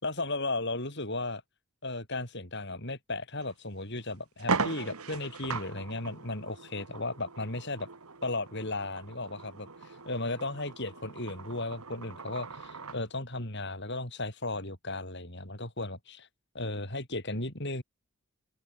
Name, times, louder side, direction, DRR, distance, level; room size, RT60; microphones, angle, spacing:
voice 1, 0.0-1.4 1.8-7.9 8.2-16.3 16.5-17.8, left 2 dB, 50° left, 7.2 m, -35 dB
sound 1, 3.4-3.5 4.0-4.1 4.4-13.0, right 4 dB, 85° right, 1.9 m, -38 dB
head